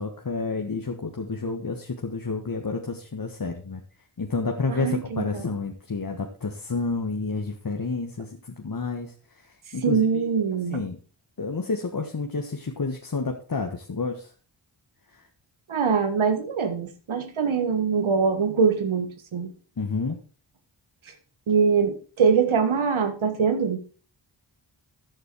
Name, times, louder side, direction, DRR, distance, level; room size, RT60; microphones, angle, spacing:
voice 1, 0.0-3.8 4.2-10.2 10.7-11.0 11.4-14.3 19.8-20.2, left 4 dB, 45° left, 3 dB, 1.7 m, -30 dB
voice 2, 4.7-5.4 9.8-10.8 15.7-19.5 21.5-23.8, right 5 dB, 85° right, 8 dB, 1.7 m, -23 dB
13.5 x 6.6 x 4.7 m, 0.38 s
cardioid pair, 40°, 47 cm